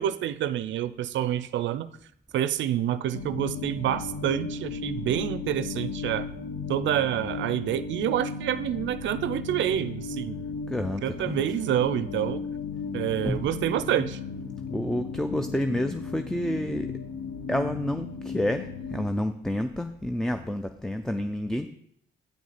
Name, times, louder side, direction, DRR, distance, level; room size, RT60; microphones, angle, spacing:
voice 1, 0.0-1.9 2.3-6.3 6.7-10.5 11.0-12.4 12.9-14.2, right 11 dB, 70° right, 0.4 m, -28 dB
sound 1, 3.1-19.1, left 5 dB, 75° left, 0.8 m, -35 dB
voice 2, 10.7-11.4 13.2-13.5 14.7-16.9 17.5-21.7, left 1 dB, 5° left, 0.4 m, -29 dB
8.2 x 6.3 x 4.1 m
cardioid pair, 90°, 20 cm